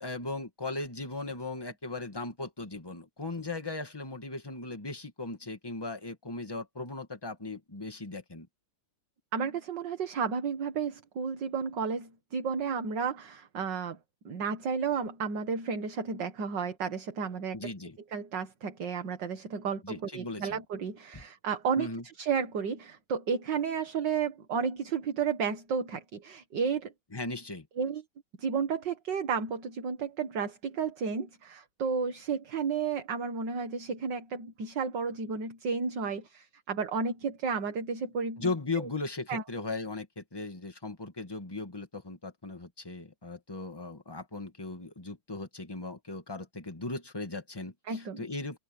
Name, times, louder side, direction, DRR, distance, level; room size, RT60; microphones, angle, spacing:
voice 1, 0.0-8.5 17.5-18.0 19.8-20.6 21.1-21.2 21.8-22.0 27.1-27.7 38.4-48.6, left 3 dB, 10° left, 2.0 m, -38 dB
voice 2, 9.3-14.0 14.3-17.6 18.1-21.9 22.2-26.9 27.8-28.0 28.4-38.9 39.3-39.4 47.9-48.3, right 6 dB, 55° right, 2.2 m, -32 dB
omnidirectional pair, 2.4 m